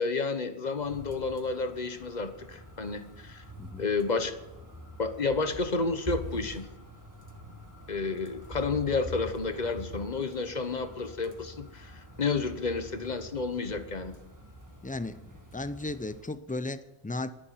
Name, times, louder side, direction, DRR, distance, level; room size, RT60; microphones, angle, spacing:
voice 1, 0.0-3.4 3.8-4.4 5.0-6.7 7.9-14.2, left 4 dB, 40° left, 9 dB, 1.3 m, -31 dB
sound 1, 0.8-16.3, left 1 dB, 15° right, 1.9 m, -46 dB
voice 2, 14.8-17.3, left 2 dB, 10° left, 13 dB, 0.4 m, -35 dB
13.0 x 11.5 x 9.4 m, 1.0 s
omnidirectional pair, 1.2 m